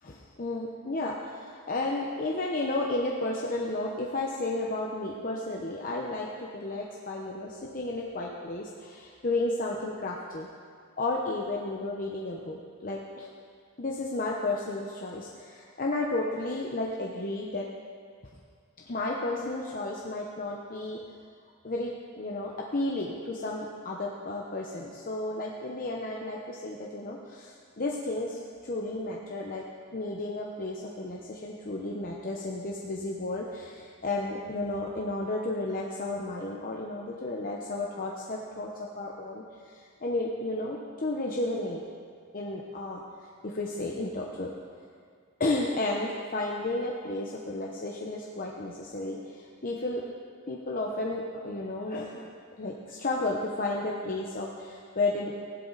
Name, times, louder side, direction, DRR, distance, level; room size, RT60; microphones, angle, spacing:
voice 1, 0.0-10.5 11.0-13.3 13.8-17.7 18.9-21.0 21.6-29.6 29.9-41.8 42.3-43.0 43.4-44.5 45.4-50.0 50.5-52.3 52.6-55.4, left 2 dB, 40° left, -2 dB, 0.9 m, -33 dB
15.5 x 11.5 x 4.0 m, 2.1 s
head